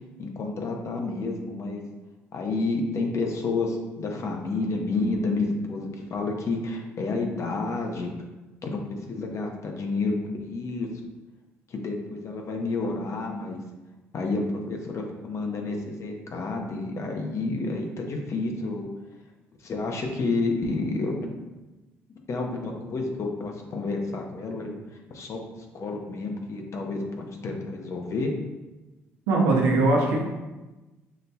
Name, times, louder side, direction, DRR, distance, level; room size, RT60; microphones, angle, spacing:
voice 1, 0.2-1.8 2.3-8.1 8.6-10.9 11.7-13.6 14.1-18.9 19.6-21.3 22.3-24.8 25.1-25.4 25.7-28.3, left 3 dB, 55° left, 2 dB, 0.8 m, -30 dB
voice 2, 29.3-30.2, right 2 dB, 85° right, -1 dB, 0.7 m, -21 dB
5.8 x 2.7 x 2.3 m, 1.1 s
supercardioid pair, 60°, 6 cm